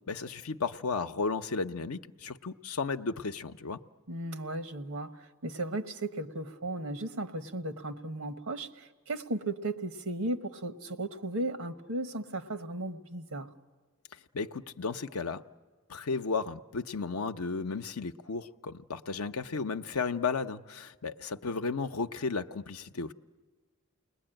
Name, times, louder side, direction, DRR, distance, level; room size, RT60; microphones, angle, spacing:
voice 1, 0.1-3.8 14.3-15.4 15.9-23.1, left 4 dB, 85° left, 8 dB, 0.8 m, -34 dB
voice 2, 4.1-13.5, right 2 dB, 80° right, 9 dB, 1.3 m, -36 dB
29.0 x 21.0 x 9.0 m, 1.5 s
head